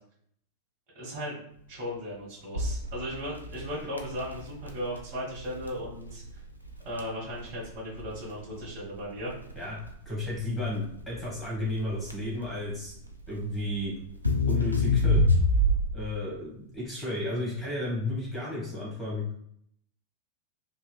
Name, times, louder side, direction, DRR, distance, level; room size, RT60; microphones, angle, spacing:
voice 1, 0.9-1.4 1.7-6.2 6.8-9.3, equal, 45° right, -5 dB, 1.3 m, -36 dB
Crackle, 2.5-16.1, left 1 dB, 90° left, 0.4 m, -28 dB
voice 2, 10.0-13.0 13.3-13.9 14.5-15.2 15.9-19.3, left 1 dB, 5° left, -6 dB, 1.2 m, -33 dB
2.9 x 2.7 x 2.2 m, 0.67 s
figure-of-eight pair, 90°, 0 cm